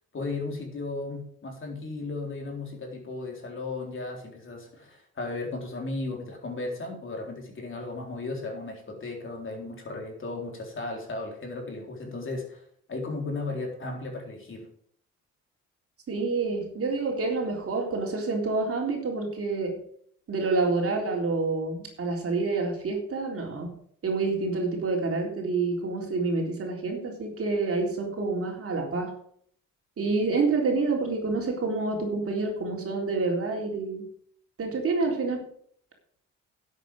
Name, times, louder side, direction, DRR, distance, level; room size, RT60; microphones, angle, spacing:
voice 1, 0.1-12.6 12.9-14.7, left 3 dB, 40° left, 1 dB, 3.9 m, -35 dB
voice 2, 16.1-19.8 20.3-23.7 24.0-29.1 30.0-34.0 34.6-35.5, right 3 dB, 50° right, 0 dB, 3.7 m, -28 dB
11.0 x 8.2 x 5.4 m, 0.63 s
cardioid pair, 90°, 30 cm